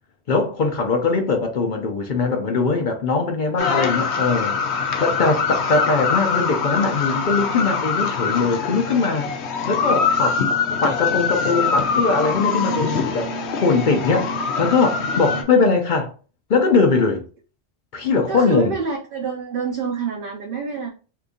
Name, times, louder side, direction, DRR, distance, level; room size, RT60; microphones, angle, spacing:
voice 1, 0.3-4.5 5.0-9.3 9.7-10.5 10.8-13.3 13.6-16.1 16.5-17.2 17.9-18.7, left 4 dB, 55° left, 0.7 m, -21 dB
sound 1, 3.6-15.4, left 5 dB, 80° left, 0.9 m, -23 dB
voice 2, 18.3-20.9, right 5 dB, 60° right, 0.7 m, -27 dB
2.8 x 2.6 x 3.6 m
omnidirectional pair, 1.1 m